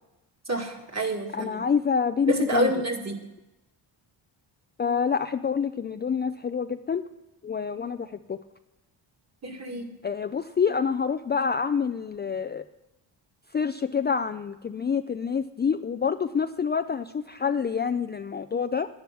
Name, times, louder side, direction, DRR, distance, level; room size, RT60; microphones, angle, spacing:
voice 1, 0.5-1.6 2.3-3.2 9.4-9.9, right 1 dB, 35° right, 2 dB, 2.3 m, -28 dB
voice 2, 1.3-2.7 4.8-7.1 7.4-8.4 10.0-12.6 13.5-18.9, left 6 dB, 25° left, 9 dB, 0.4 m, -27 dB
10.5 x 10.5 x 6.1 m, 0.98 s
cardioid pair, 85°, 46 cm